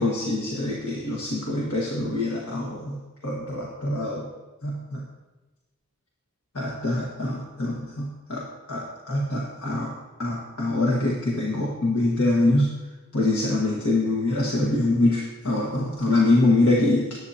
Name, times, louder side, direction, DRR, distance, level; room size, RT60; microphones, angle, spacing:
voice 1, 0.0-3.0 3.2-4.2 4.6-5.0 6.6-8.4 8.7-9.9 10.2-12.7 13.1-17.2, left 2 dB, 70° left, -4 dB, 1.7 m, -24 dB
19.0 x 8.9 x 2.9 m, 1.2 s
head